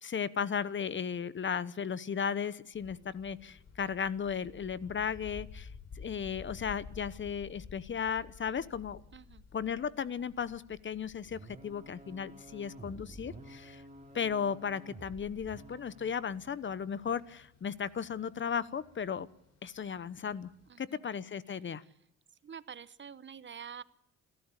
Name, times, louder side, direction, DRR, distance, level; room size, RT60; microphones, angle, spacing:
voice 1, 0.0-5.7 6.0-9.0 9.5-13.8 14.1-19.3 19.6-20.5 20.8-21.8, left 7 dB, 40° left, 17 dB, 1.0 m, -35 dB
sound 1, 2.7-20.7, left 5 dB, 55° left, 3.7 m, -54 dB
voice 2, 9.1-9.4 20.7-20.8 22.4-23.8, right 7 dB, 40° right, 16 dB, 0.8 m, -46 dB
sound 2, 11.2-16.1, right 2 dB, 25° right, 2.9 m, -51 dB
28.0 x 13.0 x 8.3 m, 0.77 s
cardioid pair, 90°, 30 cm